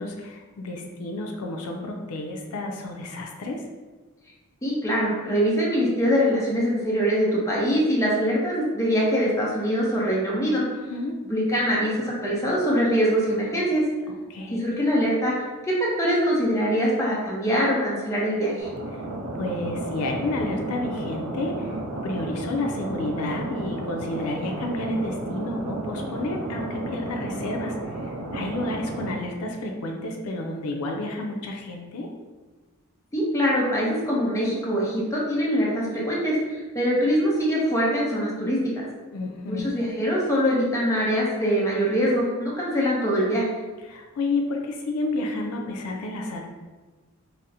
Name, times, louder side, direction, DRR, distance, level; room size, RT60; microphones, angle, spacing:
voice 1, 0.0-3.6 10.9-11.2 14.3-14.6 18.9-19.0 19.3-21.8 22.0-32.1 39.1-39.7 43.9-46.5, left 2 dB, 85° left, 2 dB, 0.4 m, -30 dB
voice 2, 4.6-10.6 11.3-13.8 14.5-18.7 33.1-38.8 39.5-43.6, equal, 15° left, -5 dB, 0.6 m, -23 dB
sound 1, 18.6-29.1, right 2 dB, 80° right, 0.5 m, -33 dB
4.0 x 2.0 x 2.6 m, 1.3 s
head